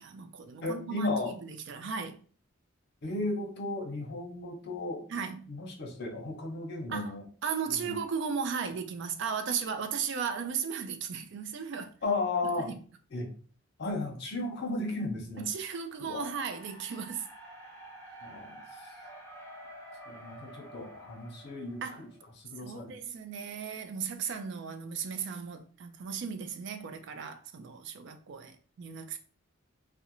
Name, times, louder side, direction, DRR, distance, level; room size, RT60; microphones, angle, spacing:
voice 1, 0.0-1.3 1.7-2.2 5.1-5.5 6.9-7.1 7.4-11.9 12.7-12.8 15.5-17.3 21.8-22.0 22.6-29.2, right 6 dB, 65° right, 0.4 m, -36 dB
voice 2, 0.6-1.4 3.0-5.1 5.5-7.3 7.7-8.0 12.0-12.7 13.1-13.3 13.8-15.5 16.0-16.3 18.2-18.9 20.1-22.1 22.4-23.0, left 2 dB, 60° left, 0.7 m, -35 dB
sound 1, 16.2-22.3, right 1 dB, 10° left, 0.7 m, -49 dB
2.4 x 2.1 x 2.9 m
head